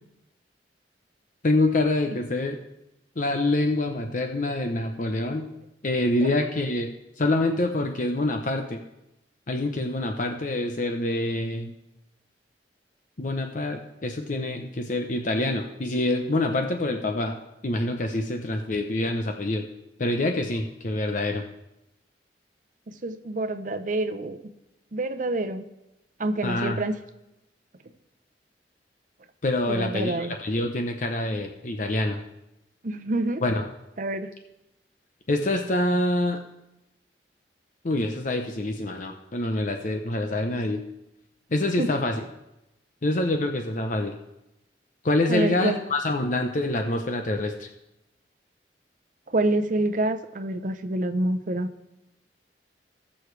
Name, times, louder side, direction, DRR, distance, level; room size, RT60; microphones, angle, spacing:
voice 1, 1.4-2.6 3.2-5.5 5.8-8.8 9.5-11.7 13.2-19.6 20.0-21.4 26.4-26.8 29.4-32.2 33.4-33.6 35.3-36.4 37.8-40.8 41.5-42.2 43.0-44.2 45.0-47.7, left 2 dB, 45° left, 4 dB, 0.7 m, -26 dB
voice 2, 22.9-24.4 24.9-25.6 26.2-27.0 29.7-30.4 32.8-33.4 34.0-34.3 41.8-41.9 45.3-45.8 49.3-51.7, right 2 dB, 45° right, 8 dB, 0.7 m, -27 dB
19.0 x 6.4 x 3.3 m, 0.92 s
head